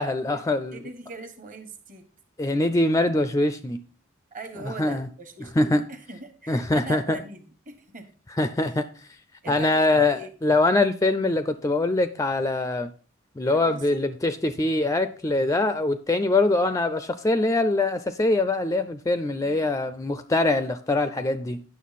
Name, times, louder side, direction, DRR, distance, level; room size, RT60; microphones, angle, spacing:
voice 1, 0.0-0.8 2.4-3.8 4.8-5.1 5.6-5.8 6.5-7.2 8.3-8.9 9.5-12.9 13.4-21.6, left 2 dB, 15° left, 11 dB, 0.4 m, -23 dB
voice 2, 0.7-2.1 4.3-8.1 8.6-8.7 9.4-10.3 13.5-14.0 19.4-19.6, right 3 dB, 40° right, 7 dB, 1.3 m, -41 dB
9.3 x 6.6 x 4.1 m, 0.38 s
head